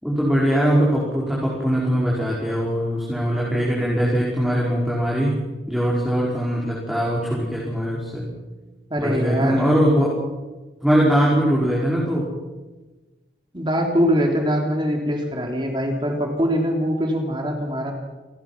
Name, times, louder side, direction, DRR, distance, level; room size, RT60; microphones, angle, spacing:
voice 1, 0.0-5.3 5.7-8.2 9.0-10.1 10.8-12.3, equal, ahead, -6 dB, 5.2 m, -21 dB
voice 2, 8.9-9.7 13.5-17.9, equal, 25° right, 2 dB, 3.5 m, -23 dB
29.0 x 19.5 x 6.1 m, 1.2 s
head